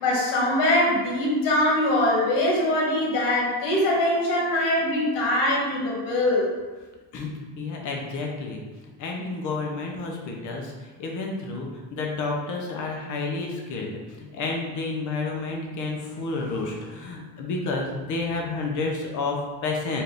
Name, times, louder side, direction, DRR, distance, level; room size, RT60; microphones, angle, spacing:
voice 1, 0.0-6.5, left 1 dB, 90° left, -3 dB, 1.3 m, -22 dB
voice 2, 7.1-8.6 9.0-20.0, left 3 dB, 45° left, 0 dB, 0.7 m, -30 dB
4.2 x 2.6 x 3.3 m, 1.3 s
cardioid pair, 165°, 42 cm